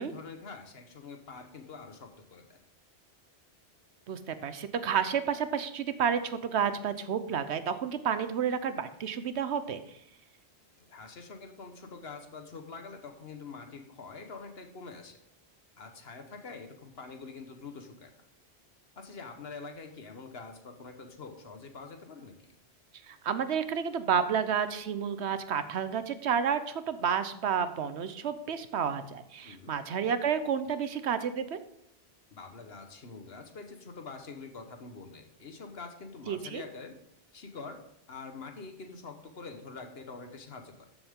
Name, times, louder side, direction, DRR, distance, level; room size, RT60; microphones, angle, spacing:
voice 1, 0.0-2.6 10.7-15.2 15.8-18.1 19.0-22.5 29.4-29.7 32.3-37.0 37.3-37.8 38.1-40.9, left 4 dB, 65° left, 5 dB, 1.4 m, -45 dB
voice 2, 4.1-9.8 23.1-31.6 36.3-36.6, right 7 dB, 75° right, 11 dB, 1.1 m, -30 dB
13.0 x 7.2 x 3.7 m, 0.72 s
omnidirectional pair, 1.1 m